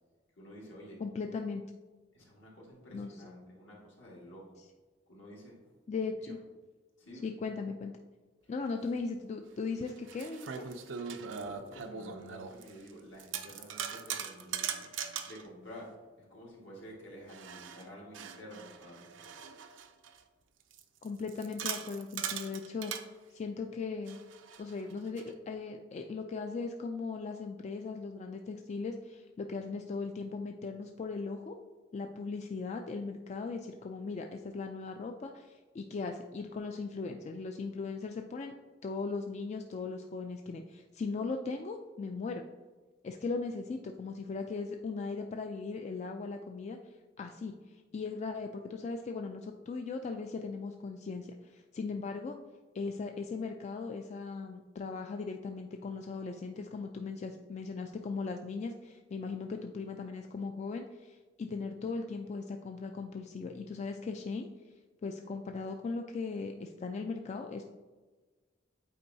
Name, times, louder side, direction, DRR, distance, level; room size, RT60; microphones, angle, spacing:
voice 1, 0.4-1.0 2.1-4.6 5.1-5.5 6.0-6.3 7.0-7.3 11.1-14.9 15.2-15.9 16.2-19.1, equal, 70° left, -4 dB, 1.8 m, -50 dB
voice 2, 1.0-1.6 2.9-3.2 5.9-6.4 7.2-7.9 8.5-10.7 21.0-22.9 23.3-24.2 24.6-31.5 31.9-38.5 38.8-42.4 43.0-46.8 47.2-52.4 52.7-64.5 65.0-67.6, left 4 dB, 35° left, 4 dB, 0.3 m, -38 dB
sound 1, 9.0-9.1 9.8-12.9 13.2-15.5 17.3-20.2 20.7-23.1 24.1-25.3, right 7 dB, 85° right, 0.5 m, -40 dB
8.4 x 4.4 x 2.7 m, 1.3 s
head